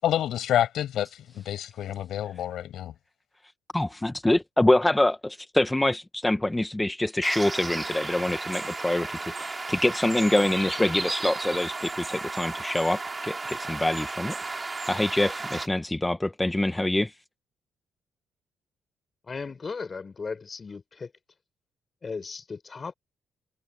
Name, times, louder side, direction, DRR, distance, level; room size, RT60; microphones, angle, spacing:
voice 1, 0.0-2.9, left 11 dB, 75° left, 6.8 m, -28 dB
voice 2, 3.7-17.1, left 1 dB, 10° left, 1.2 m, -25 dB
sound 1, 7.2-15.7, right 3 dB, 25° right, 6.5 m, -34 dB
voice 3, 19.2-21.1 22.0-22.9, left 4 dB, 35° left, 4.8 m, -36 dB
cardioid pair, 90°, 0 cm